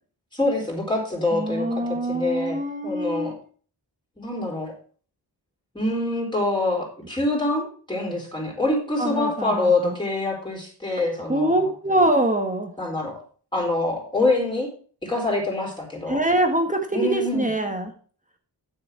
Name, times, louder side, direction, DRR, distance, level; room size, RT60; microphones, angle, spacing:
voice 1, 0.3-3.3 4.2-4.7 5.7-11.7 12.8-13.2 13.5-14.7 15.0-16.2 16.9-17.5, left 2 dB, 10° left, -2 dB, 4.2 m, -25 dB
voice 2, 1.3-3.3 9.0-9.9 11.3-12.7 16.1-17.9, right 1 dB, 20° right, 4 dB, 1.4 m, -24 dB
9.2 x 7.3 x 4.6 m, 0.42 s
wide cardioid pair, 90°, 41 cm